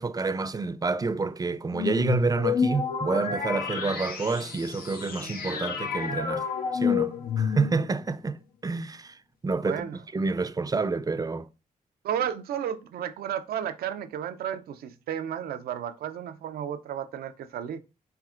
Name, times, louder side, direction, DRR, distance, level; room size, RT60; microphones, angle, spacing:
voice 1, 0.0-6.5 6.7-8.4 8.6-9.2 9.4-11.5, right 4 dB, 25° right, 0.4 m, -28 dB
sound 1, 1.7-8.0, left 6 dB, 85° left, 0.7 m, -29 dB
voice 2, 9.6-10.0 12.0-17.8, right 9 dB, 90° right, 0.4 m, -33 dB
4.4 x 3.5 x 2.4 m
cardioid pair, 55°, 15 cm